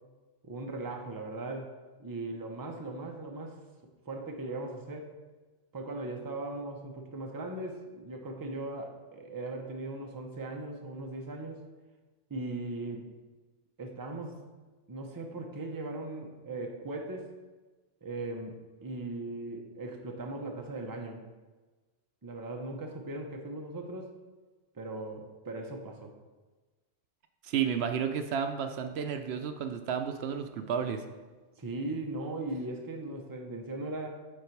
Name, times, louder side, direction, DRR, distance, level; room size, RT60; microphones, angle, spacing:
voice 1, 0.4-1.7 2.0-3.6 4.1-5.1 5.7-11.7 12.3-13.1 13.8-14.4 14.9-17.3 18.0-18.5 18.8-21.2 22.2-24.1 24.7-26.1 31.6-34.1, right 2 dB, 25° right, 2 dB, 0.7 m, -38 dB
voice 2, 27.4-31.0, right 7 dB, 75° right, 7 dB, 0.8 m, -32 dB
8.7 x 3.9 x 4.5 m, 1.3 s
omnidirectional pair, 1.1 m